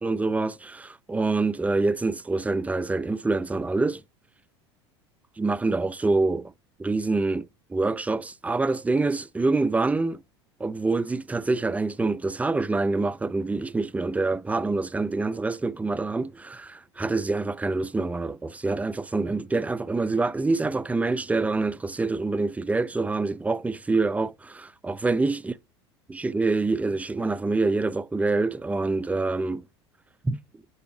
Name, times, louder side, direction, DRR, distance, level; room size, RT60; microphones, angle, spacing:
voice 1, 0.0-4.0 5.4-6.5 6.8-10.2 10.6-25.5 26.1-29.6 30.2-30.4, right 3 dB, 10° right, 0.4 m, -26 dB
6.8 x 4.8 x 4.8 m
hypercardioid pair, 80°, 14 cm